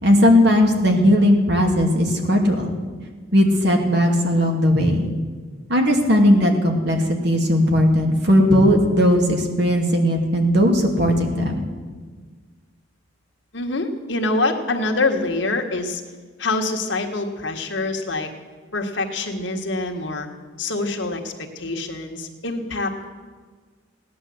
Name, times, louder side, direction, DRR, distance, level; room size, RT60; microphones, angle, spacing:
voice 1, 0.0-2.7 3.3-5.1 5.7-11.7, equal, 55° right, 2 dB, 2.5 m, -17 dB
voice 2, 13.5-16.0 16.4-18.3 18.7-20.3 20.6-23.1, left 2 dB, 65° left, 3 dB, 1.8 m, -25 dB
17.0 x 10.0 x 7.9 m, 1.5 s
head